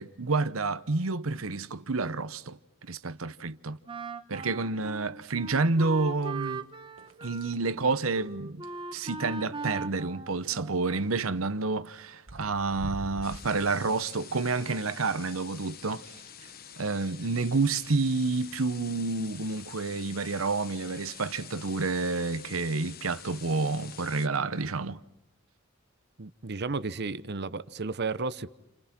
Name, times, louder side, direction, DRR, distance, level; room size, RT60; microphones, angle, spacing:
voice 1, 0.0-2.6 2.9-3.8 4.3-6.7 7.2-8.6 8.9-16.1 16.8-25.0, right 3 dB, 85° right, 1.0 m, -29 dB
Wind instrument woodwind instrument, 3.9-11.1, right 3 dB, 25° right, 1.2 m, -40 dB
sound 1, 5.4-5.6 5.9-6.5 7.0-8.8 11.0-11.3 12.0-12.1 12.3-13.7, right 1 dB, 70° right, 1.7 m, -44 dB
sound 2, 13.2-24.3, left 9 dB, 50° left, 1.3 m, -47 dB
voice 2, 26.2-28.5, right 4 dB, 55° right, 0.9 m, -33 dB
29.5 x 29.0 x 6.1 m
head